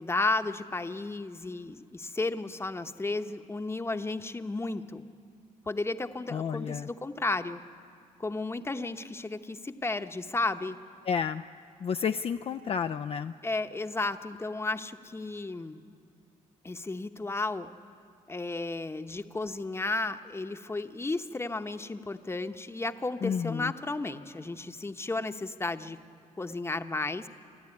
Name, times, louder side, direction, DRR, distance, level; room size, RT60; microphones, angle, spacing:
voice 1, 0.0-5.0 5.7-7.6 8.2-10.8 13.4-15.8 16.6-17.7 18.3-26.0 26.4-27.3, left 2 dB, 20° left, 8 dB, 0.9 m, -33 dB
voice 2, 6.3-6.9 11.1-11.4 11.8-13.3 23.2-23.7, left 7 dB, 45° left, 8 dB, 0.4 m, -31 dB
28.0 x 11.5 x 9.8 m, 2.3 s
cardioid pair, 85°, 14 cm